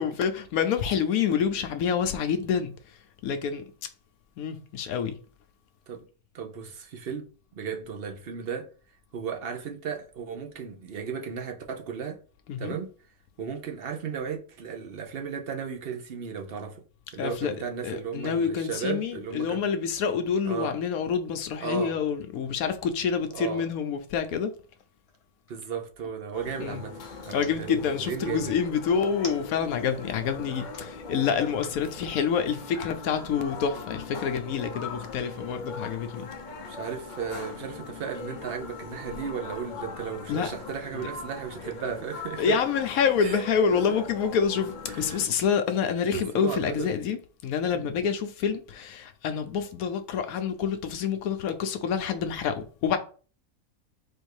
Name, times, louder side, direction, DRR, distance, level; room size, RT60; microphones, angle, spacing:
voice 1, 0.0-3.6 4.4-5.2 12.5-12.8 17.2-17.5 17.8-24.5 26.6-26.8 27.3-36.3 40.3-40.5 42.4-47.2 47.4-53.0, left 7 dB, 75° left, 1.0 m, -27 dB
voice 2, 6.3-8.7 9.1-12.2 12.6-12.9 13.4-16.8 17.1-19.7 20.4-20.7 21.6-21.9 23.3-23.7 25.5-28.5 36.7-42.6 43.2-43.4 43.7-43.8 44.9-45.3 46.1-46.9 47.7-47.9, right 7 dB, 50° right, 0.8 m, -35 dB
sound 1, 24.6-26.2 27.1-27.5 28.9-29.9 30.3-30.8 31.5-31.8, left 2 dB, 30° left, 0.9 m, -45 dB
sound 2, 26.3-45.3, left 4 dB, 60° left, 0.5 m, -40 dB
4.3 x 2.6 x 4.7 m
omnidirectional pair, 1.5 m